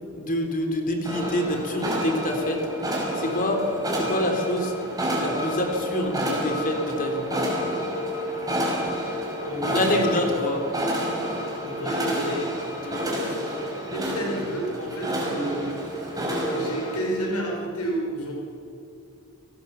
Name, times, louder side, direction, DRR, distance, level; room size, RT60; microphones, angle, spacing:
voice 1, 0.1-2.6 3.2-3.7 4.0-4.7 5.2-7.3 9.6-10.6 12.8-13.1, left 1 dB, 40° left, 4 dB, 3.7 m, -26 dB
sound 1, 1.0-17.0, equal, 15° right, 5.3 m, -29 dB
voice 2, 9.4-10.2 11.6-12.5 13.2-13.4 13.9-16.0 16.5-18.3, right 1 dB, 85° left, -1 dB, 5.3 m, -31 dB
29.5 x 18.0 x 7.2 m, 2.7 s
head